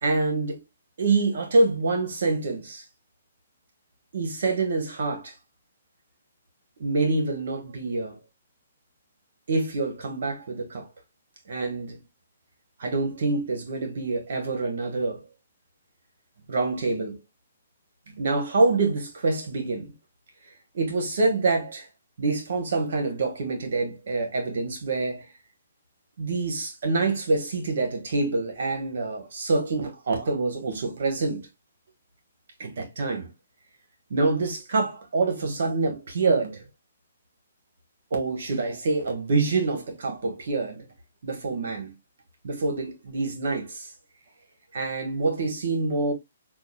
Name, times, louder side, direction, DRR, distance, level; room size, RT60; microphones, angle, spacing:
voice 1, 0.0-0.6 1.0-2.8 4.1-5.3 6.8-8.2 9.5-10.9 11.5-12.0 12.8-15.2 16.5-17.2 18.2-19.9 20.7-21.9 22.2-25.2 26.2-31.5 32.6-33.3 34.1-36.7 38.1-40.9 41.2-41.9 42.4-43.9 44.7-46.1, right 3 dB, 55° right, 1.2 m, -26 dB
5.6 x 2.4 x 2.2 m
hypercardioid pair, 175°, 0 cm